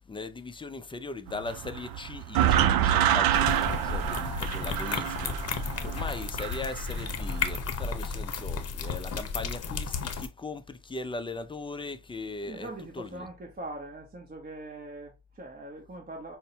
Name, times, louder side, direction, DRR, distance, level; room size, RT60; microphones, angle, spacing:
voice 1, 0.1-5.5 5.8-12.7 13.0-13.3, left 3 dB, 15° left, 0.4 m, -39 dB
sound 1, 1.3-7.6, right 11 dB, 70° right, 0.5 m, -27 dB
sound 2, 3.3-10.3, left 5 dB, 40° left, 0.8 m, -33 dB
voice 2, 12.4-16.4, right 2 dB, 25° right, 0.9 m, -42 dB
5.3 x 2.1 x 2.7 m
cardioid pair, 80°, 37 cm